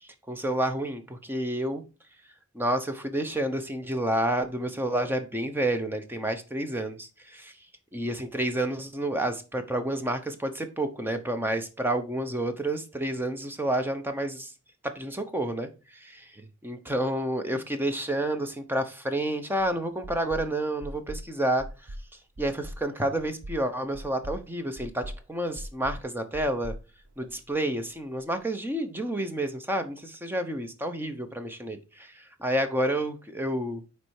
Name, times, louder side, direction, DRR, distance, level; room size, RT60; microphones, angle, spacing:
voice 1, 0.3-1.8 2.5-7.5 7.9-14.5 14.9-16.3 16.6-21.7 22.4-25.0 25.3-26.7 27.2-32.1 32.4-33.8, right 1 dB, 10° right, 0.8 m, -29 dB
sound 1, 19.6-19.7 20.0-20.5 20.8-21.2 21.6-22.0 22.4-22.8 23.2-23.6 23.9-24.4 24.8-25.2 25.5-26.0 26.3-27.5, equal, 70° right, 0.7 m, -39 dB
9.8 x 3.3 x 4.7 m
head